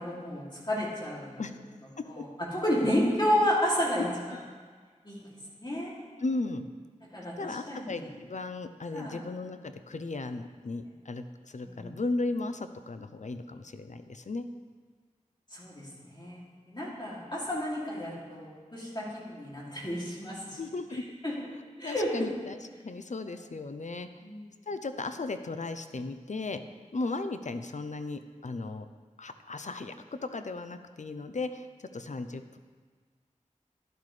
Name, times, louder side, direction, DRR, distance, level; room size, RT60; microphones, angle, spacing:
voice 1, 0.0-1.4 2.0-2.3 2.5-4.4 5.0-5.3 5.6-6.0 7.1-8.2 8.9-9.2 11.6-11.9 15.5-20.6 20.9-21.3 21.8-22.3 24.2-24.5, equal, 35° left, -5 dB, 2.7 m, -31 dB
voice 2, 6.2-6.6 7.4-14.5 20.6-21.0 21.8-22.6 22.8-24.1 24.7-26.6 26.9-28.9 29.2-31.7 31.9-32.6, left 3 dB, 65° left, 9 dB, 0.6 m, -36 dB
11.5 x 10.5 x 3.3 m, 1.5 s
wide cardioid pair, 60°, 13 cm